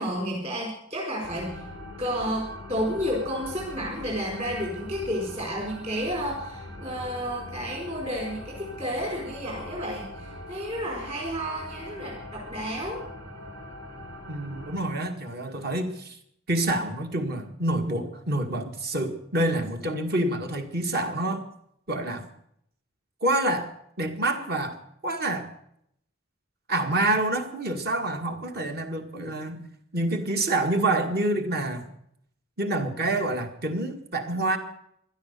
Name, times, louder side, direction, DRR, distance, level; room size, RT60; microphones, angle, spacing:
voice 1, 0.0-1.6 2.0-13.0, equal, 30° right, -1 dB, 4.7 m, -31 dB
sound 1, 1.2-14.8, left 1 dB, 75° right, 5.5 m, -41 dB
voice 2, 14.3-16.2 16.5-21.4 21.9-22.3 23.2-23.7 24.0-25.5 26.7-29.7 29.9-31.9 32.6-34.6, right 2 dB, 50° right, 6 dB, 2.0 m, -27 dB
17.0 x 12.5 x 6.8 m, 0.72 s
head